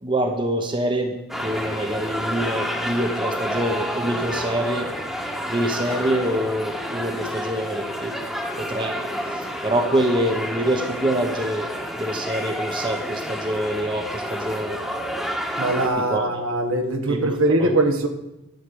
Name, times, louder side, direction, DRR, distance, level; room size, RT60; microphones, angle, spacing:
voice 1, 0.0-4.9 5.5-8.2 8.6-9.0 9.3-11.7 12.0-14.8 16.0-16.3 17.1-17.3 17.6-17.8, right 1 dB, 20° right, 4 dB, 1.1 m, -25 dB
sound 1, 1.3-15.9, equal, ahead, 1.4 m, -29 dB
voice 2, 15.6-18.1, right 2 dB, 70° right, 6 dB, 1.3 m, -21 dB
11.5 x 7.6 x 6.9 m, 0.94 s
head